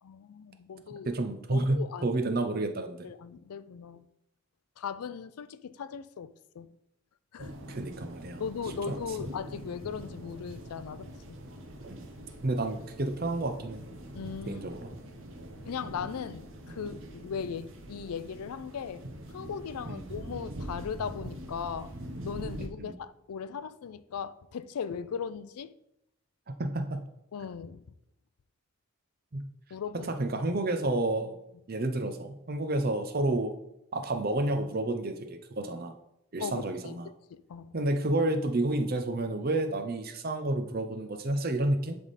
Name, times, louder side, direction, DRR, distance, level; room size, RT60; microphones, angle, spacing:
voice 1, 0.0-1.1 1.5-2.1 3.0-4.0 4.8-6.7 7.3-7.5 8.4-11.4 14.1-14.6 15.6-19.0 19.3-21.9 22.2-25.7 27.3-27.8 29.7-30.1 36.4-37.0 37.3-37.7, left 6 dB, 85° left, 0.4 m, -38 dB
voice 2, 1.1-3.1 7.7-8.4 8.9-9.0 11.9-12.1 12.4-13.9 14.5-14.9 19.8-20.1 22.8-23.0 26.5-27.1 29.3-29.5 30.1-31.3 31.7-33.5 33.9-35.9 36.3-37.1 37.7-42.0, right 2 dB, 40° right, 0.6 m, -30 dB
sound 1, 7.4-22.7, right 1 dB, 60° right, 0.9 m, -44 dB
10.5 x 3.5 x 4.1 m
head